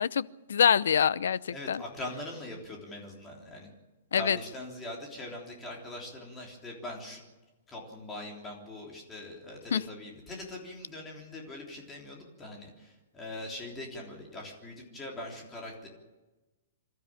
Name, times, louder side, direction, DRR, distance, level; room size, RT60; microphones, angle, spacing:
voice 1, 0.0-1.8 4.1-4.4 9.7-9.8, left 8 dB, 80° left, 0.7 m, -25 dB
voice 2, 1.5-3.7 4.1-7.2 7.7-15.9, left 1 dB, 10° left, 3.5 m, -42 dB
27.0 x 13.0 x 8.8 m
hypercardioid pair, 180°, 0 cm